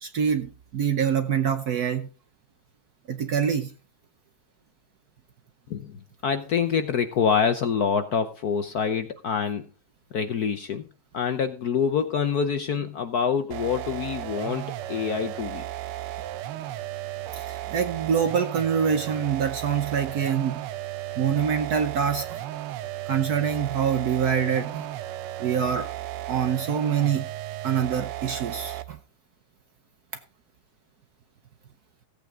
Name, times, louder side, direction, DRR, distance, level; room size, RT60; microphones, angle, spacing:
voice 1, 0.0-2.1 3.1-3.7 17.3-20.6 21.2-22.4 23.1-24.9 25.4-25.9 26.3-27.3 27.6-29.0, right 7 dB, 60° right, 1.1 m, -25 dB
voice 2, 5.7-9.6 10.1-10.8 11.1-15.6, left 6 dB, 60° left, 1.0 m, -26 dB
sound 1, 13.5-29.0, right 14 dB, 85° right, 1.6 m, -35 dB
16.0 x 8.4 x 3.7 m
omnidirectional pair, 2.4 m